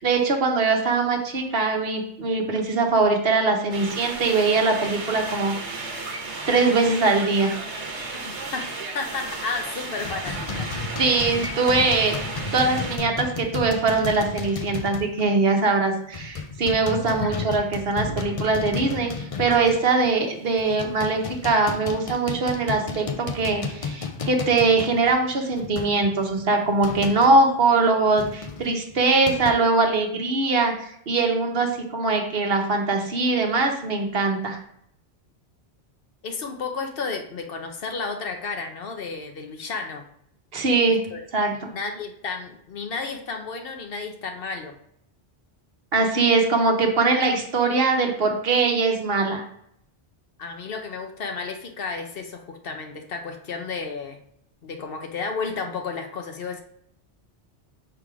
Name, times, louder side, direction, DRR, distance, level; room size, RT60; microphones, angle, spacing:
voice 1, 0.0-5.9 6.5-7.6 11.0-12.2 12.5-34.6 40.5-41.0 41.3-41.7 45.9-49.4, right 3 dB, 60° right, 2 dB, 1.2 m, -22 dB
sound 1, 3.7-13.0, right 3 dB, 75° right, 1.3 m, -34 dB
voice 2, 8.1-8.6 8.9-10.7 17.2-17.3 36.2-40.0 41.1-41.2 41.7-44.7 50.4-54.2 54.6-56.6, left 4 dB, 55° left, 5 dB, 1.0 m, -32 dB
sound 2, 10.0-15.3 15.5-15.7 16.1-20.1 20.6-27.4 28.2-29.5, left 4 dB, 40° left, 0.5 m, -33 dB
5.9 x 3.5 x 4.8 m, 0.71 s
omnidirectional pair, 1.2 m